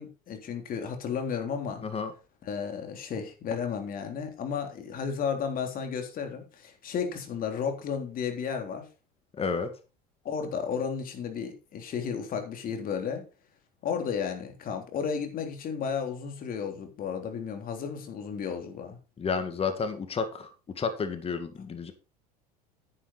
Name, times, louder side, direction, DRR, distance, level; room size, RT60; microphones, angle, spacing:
voice 1, 0.0-1.8 2.5-8.8 10.3-13.2 13.8-19.0, left 6 dB, 45° left, 5 dB, 3.4 m, -33 dB
voice 2, 1.8-2.1 9.3-9.7 19.2-20.5 20.8-21.9, left 5 dB, 30° left, 8 dB, 2.2 m, -31 dB
10.0 x 9.9 x 4.2 m, 0.32 s
hypercardioid pair, 80°, 20 cm